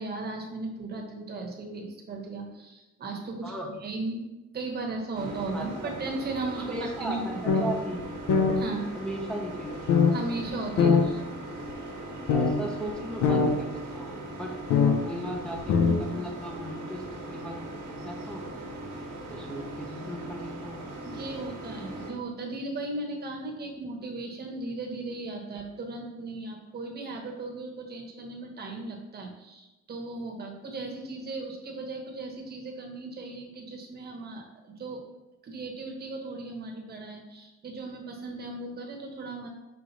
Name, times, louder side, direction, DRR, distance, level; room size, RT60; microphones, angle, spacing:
voice 1, 0.0-4.3 4.5-7.2 8.6-8.9 10.1-11.0 21.0-35.0 35.4-39.5, right 3 dB, 35° right, 2 dB, 1.1 m, -36 dB
sound 1, 5.1-22.1, right 1 dB, 75° right, 1.3 m, -40 dB
voice 2, 5.5-5.9 6.6-8.1 8.9-10.0 10.8-11.0 12.3-14.5 15.0-17.0 17.3-17.6 17.9-18.5 19.3-20.8, right 1 dB, 5° left, -1 dB, 0.6 m, -37 dB
sound 2, 7.5-7.6 8.0-8.1 8.3-8.5 9.9-10.1 10.8-11.0 11.7-11.8 12.3-12.5 12.9-13.0 13.2-13.5 14.7-15.0 15.6-16.0, left 6 dB, 70° left, 0.8 m, -21 dB
5.8 x 4.8 x 4.0 m, 1.0 s
cardioid pair, 175°, 29 cm